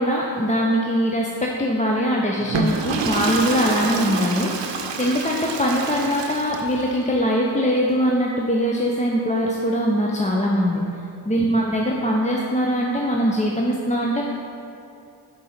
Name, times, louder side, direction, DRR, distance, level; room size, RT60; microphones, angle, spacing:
voice 1, 0.0-10.8 11.3-14.2, equal, 15° left, -2 dB, 0.6 m, -22 dB
Water / Toilet flush, 2.4-6.9, right 4 dB, 85° right, 0.7 m, -28 dB
6.2 x 4.0 x 5.8 m, 2.7 s
cardioid pair, 50°, 42 cm